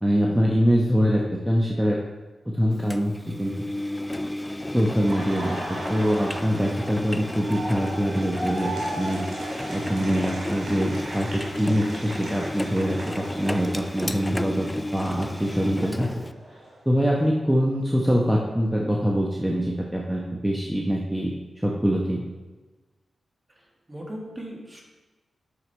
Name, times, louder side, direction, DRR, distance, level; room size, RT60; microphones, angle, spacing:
voice 1, 0.0-2.0 2.4-3.6 4.7-8.7 9.0-9.2 9.7-14.7 14.9-16.1 16.8-21.3 21.6-22.3, equal, 5° right, -3 dB, 1.2 m, -24 dB
Engine, 2.9-16.3, left 1 dB, 15° left, 0.4 m, -33 dB
Laughter, 4.9-14.7 15.0-17.1, right 1 dB, 85° right, 2.3 m, -37 dB
voice 2, 23.5-24.8, right 1 dB, 30° right, -2 dB, 2.3 m, -39 dB
9.4 x 7.0 x 3.4 m, 1.2 s
cardioid pair, 55°, 0 cm